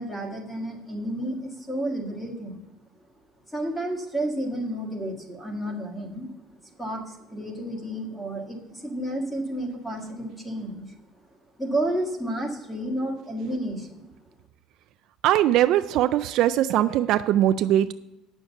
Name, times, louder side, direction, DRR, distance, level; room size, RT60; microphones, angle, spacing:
voice 1, 0.0-2.7 3.5-6.3 6.6-10.9 11.6-14.1, right 1 dB, 10° left, 2 dB, 1.6 m, -31 dB
voice 2, 15.2-17.9, right 12 dB, 55° right, 11 dB, 0.3 m, -21 dB
9.2 x 6.3 x 7.2 m, 0.95 s
cardioid pair, 175°, 0 cm